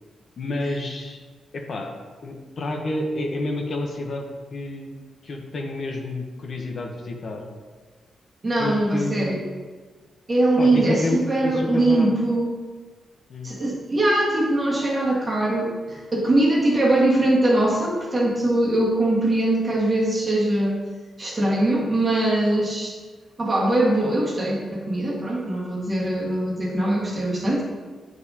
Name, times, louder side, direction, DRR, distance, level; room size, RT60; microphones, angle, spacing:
voice 1, 0.4-1.2 1.5-1.9 2.2-4.9 5.2-7.5 8.6-9.4 10.6-12.1 13.3-13.5, left 2 dB, 50° left, 2 dB, 0.8 m, -29 dB
voice 2, 8.4-9.4 10.3-12.5 13.4-20.8 21.2-23.0 23.4-27.6, right 1 dB, 30° right, -3 dB, 1.5 m, -21 dB
9.4 x 4.7 x 2.7 m, 1.4 s
wide cardioid pair, 125°, 0 cm